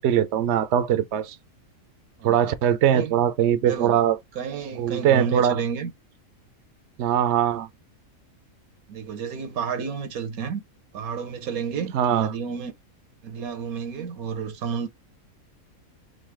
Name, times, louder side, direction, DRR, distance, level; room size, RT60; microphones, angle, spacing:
voice 1, 0.0-1.4 2.2-4.2 4.8-5.6 7.0-7.7 11.9-12.3, right 10 dB, 60° right, 0.8 m, -21 dB
voice 2, 3.6-4.0 4.3-5.9 8.9-10.6 10.9-12.7 13.2-14.9, right 6 dB, 80° right, 1.3 m, -31 dB
3.9 x 2.7 x 3.2 m
omnidirectional pair, 1.5 m